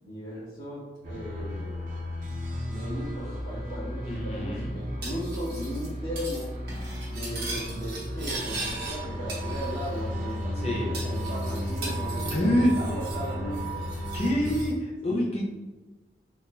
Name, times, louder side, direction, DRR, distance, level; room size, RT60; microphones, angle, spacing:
voice 1, 0.0-1.8 2.7-6.5 7.1-13.9 15.0-15.4, equal, 65° left, -14 dB, 1.4 m, -37 dB
sound 1, 1.0-14.7, equal, 45° right, 0.5 m, -34 dB
voice 2, 4.1-4.8 10.6-10.9 12.3-12.7 14.1-15.4, equal, 35° left, -3 dB, 0.6 m, -26 dB
Cutlery silverware, 5.0-5.9 6.2-6.4 6.7-9.0 9.3-10.0 10.3-10.4 10.9-13.3 13.5-14.7, right 2 dB, 65° right, 1.1 m, -39 dB
3.7 x 2.7 x 2.3 m, 1.2 s
head